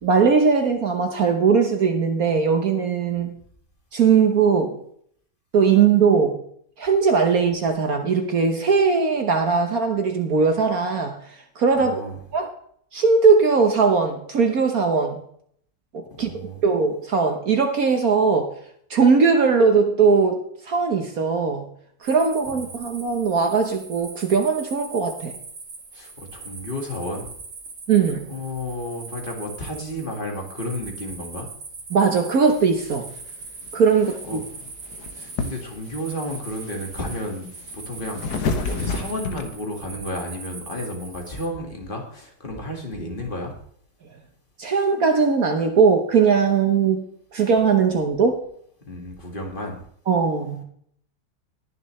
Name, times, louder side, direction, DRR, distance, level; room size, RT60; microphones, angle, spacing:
voice 1, 0.0-3.3 3.9-4.8 5.5-6.4 6.8-11.9 12.3-12.5 12.9-15.2 15.9-16.3 16.6-18.5 18.9-21.6 22.0-25.3 27.9-28.3 31.9-33.1 33.7-34.4 44.6-47.0 47.3-48.4 50.1-50.6, right 5 dB, 60° right, 4 dB, 1.5 m, -19 dB
voice 2, 11.8-12.2 16.2-16.6 22.5-22.7 25.9-27.3 28.3-31.5 34.3-34.4 35.1-43.5 48.8-49.8, left 1 dB, 30° left, 1 dB, 2.1 m, -32 dB
sound 1, 22.0-41.5, right 4 dB, 80° right, 2.6 m, -41 dB
sound 2, 32.5-39.4, left 4 dB, 65° left, 1.5 m, -31 dB
20.5 x 6.8 x 3.2 m, 0.64 s
omnidirectional pair, 1.9 m